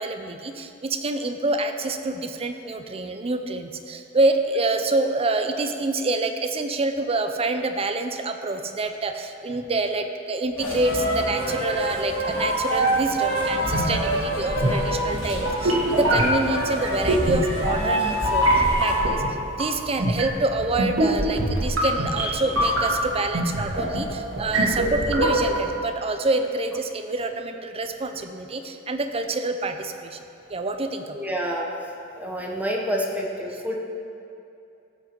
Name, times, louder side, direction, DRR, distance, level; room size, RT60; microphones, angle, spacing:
voice 1, 0.0-19.2 19.6-30.2 30.5-31.2, right 2 dB, 30° right, 6 dB, 0.6 m, -27 dB
sound 1, 10.6-19.0, right 1 dB, 80° left, 2.5 m, -26 dB
sound 2, 13.6-25.7, right 1 dB, 80° right, 2.0 m, -25 dB
voice 2, 31.1-31.7 32.2-33.8, equal, 10° right, -1 dB, 1.0 m, -28 dB
15.0 x 6.1 x 4.5 m, 2.7 s
head